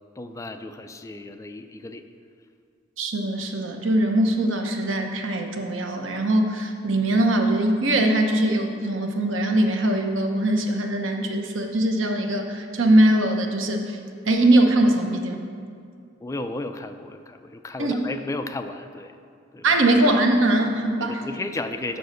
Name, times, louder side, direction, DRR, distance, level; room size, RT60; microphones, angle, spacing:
voice 1, 0.2-2.0 16.2-19.1 19.5-19.8 20.9-22.0, left 2 dB, 15° left, 8 dB, 0.3 m, -34 dB
voice 2, 3.0-14.0 14.3-15.4 17.8-18.0 19.6-21.2, right 1 dB, 90° right, 4 dB, 0.9 m, -21 dB
7.0 x 6.3 x 6.4 m, 2.3 s
head